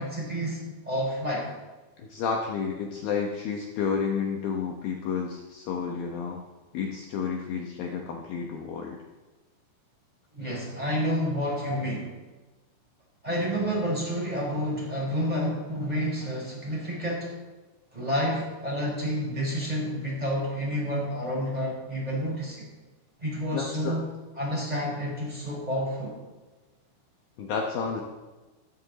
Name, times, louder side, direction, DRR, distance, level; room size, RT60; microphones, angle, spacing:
voice 1, 0.0-1.5 10.3-12.1 13.2-17.3 17.9-22.7 23.2-24.0 24.4-26.2, equal, 10° right, -4 dB, 4.6 m, -29 dB
voice 2, 2.0-6.4 6.7-9.0 11.7-11.8 23.5-24.0 27.4-28.0, left 6 dB, 70° left, 1 dB, 2.5 m, -31 dB
14.5 x 14.0 x 4.1 m, 1.2 s
omnidirectional pair, 4.9 m